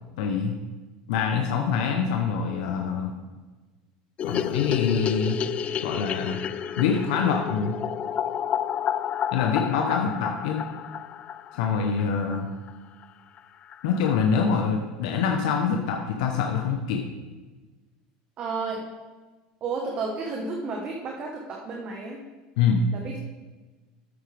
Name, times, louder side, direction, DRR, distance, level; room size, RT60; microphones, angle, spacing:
voice 1, 0.2-0.6 1.1-3.1 4.2-5.4 5.8-6.4 6.8-7.8 9.3-10.6 11.5-12.5 13.8-17.0 22.6-22.8, left 6 dB, 75° left, 2 dB, 0.9 m, -25 dB
sound 1, 4.2-12.4 12.7-12.8 13.0-13.1 13.4-13.5 13.7-14.3, left 9 dB, 40° left, 0.4 m, -31 dB
voice 2, 18.4-18.8 19.6-22.2 22.9-23.2, right 4 dB, 40° right, 0 dB, 1.4 m, -32 dB
9.9 x 8.3 x 3.5 m, 1.2 s
supercardioid pair, 110°, 3 cm